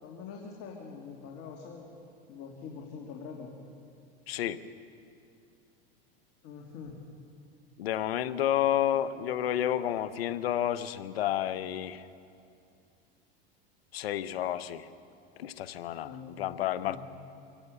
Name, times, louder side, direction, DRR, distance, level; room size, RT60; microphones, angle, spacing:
voice 1, 0.0-1.9 2.3-3.5 6.4-7.0 16.0-16.4 16.9-17.0, left 5 dB, 50° left, 0 dB, 2.9 m, -44 dB
voice 2, 4.3-4.6 7.8-12.0 13.9-14.9 15.4-17.0, left 11 dB, 90° left, 13 dB, 1.0 m, -30 dB
25.5 x 17.5 x 7.0 m, 2.6 s
supercardioid pair, 110°, 30 cm